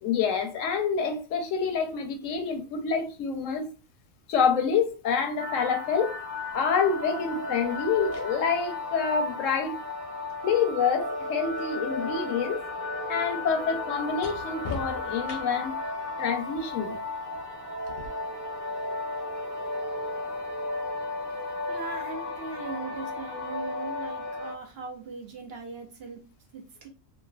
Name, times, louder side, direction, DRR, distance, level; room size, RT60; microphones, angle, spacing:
voice 1, 0.0-3.7 4.3-6.2 6.5-9.8 10.4-12.7 13.1-15.8 16.2-17.0, left 6 dB, 85° left, 1.0 m, -27 dB
sound 1, 5.4-24.5, left 2 dB, 15° right, 1.0 m, -34 dB
sound 2, 6.5-6.7 7.8-11.8 12.1-15.8 17.9-18.1, left 3 dB, 60° left, 0.8 m, -45 dB
voice 2, 21.7-26.3 26.5-26.9, right 4 dB, 55° right, 0.9 m, -39 dB
3.1 x 2.6 x 2.3 m
omnidirectional pair, 1.3 m